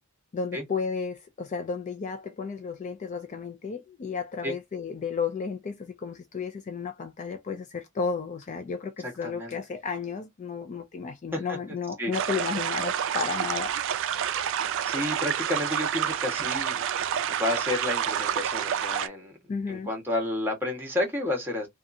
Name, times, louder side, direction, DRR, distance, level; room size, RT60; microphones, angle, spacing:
voice 1, 0.3-13.7 19.5-19.9, left 5 dB, 35° left, 0.3 m, -33 dB
voice 2, 9.0-9.6 11.3-11.6 12.0-12.1 14.8-16.9 17.3-19.4 19.7-21.7, left 1 dB, 10° right, 1.1 m, -31 dB
sound 1, 12.1-19.1, right 9 dB, 60° right, 0.3 m, -29 dB
2.6 x 2.3 x 2.5 m
head